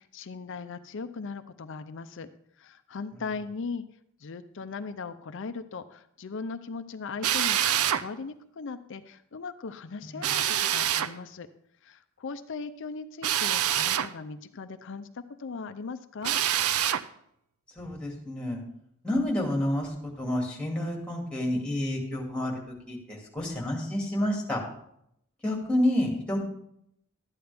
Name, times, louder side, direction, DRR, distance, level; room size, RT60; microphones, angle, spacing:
voice 1, 0.0-2.3 2.6-3.8 4.2-11.5 11.8-16.4, left 4 dB, 60° left, 11 dB, 0.5 m, -38 dB
Drill, 7.2-8.0 10.2-11.1 13.2-14.1 16.2-17.0, right 10 dB, 85° right, 0.5 m, -26 dB
voice 2, 17.8-18.6 19.0-22.5 22.9-24.6 25.4-26.4, left 1 dB, 5° left, -1 dB, 2.2 m, -29 dB
12.5 x 9.5 x 3.4 m, 0.74 s
head